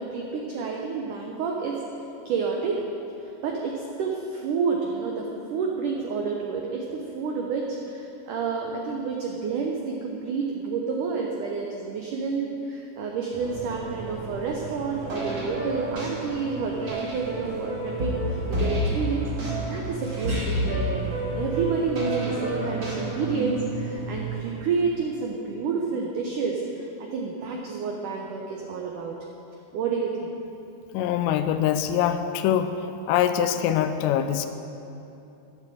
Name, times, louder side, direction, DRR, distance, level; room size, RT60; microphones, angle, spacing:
voice 1, 0.0-1.8 2.3-2.8 3.4-19.3 19.7-29.2 29.7-30.3, right 5 dB, 85° right, 0 dB, 1.8 m, -29 dB
sound 1, 13.3-24.5, right 4 dB, 50° right, 3.0 m, -36 dB
sound 2, 15.0-23.4, equal, 30° right, 2.9 m, -30 dB
voice 2, 30.9-32.7 33.1-34.5, left 10 dB, 85° left, 9 dB, 2.8 m, -23 dB
12.0 x 9.7 x 7.8 m, 2.9 s
omnidirectional pair, 5.1 m